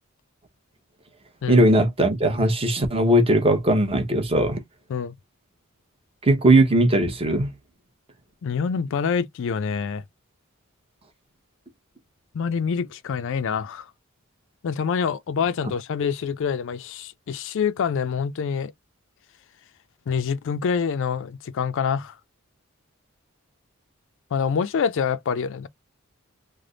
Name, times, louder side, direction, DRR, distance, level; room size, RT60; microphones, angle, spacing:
voice 1, 1.5-4.6 6.2-7.5, right 1 dB, 25° right, 0.8 m, -19 dB
voice 2, 8.4-10.0 12.3-13.9 14.6-18.7 20.1-22.2 24.3-25.7, left 6 dB, 65° left, 0.4 m, -26 dB
3.3 x 2.1 x 3.8 m
head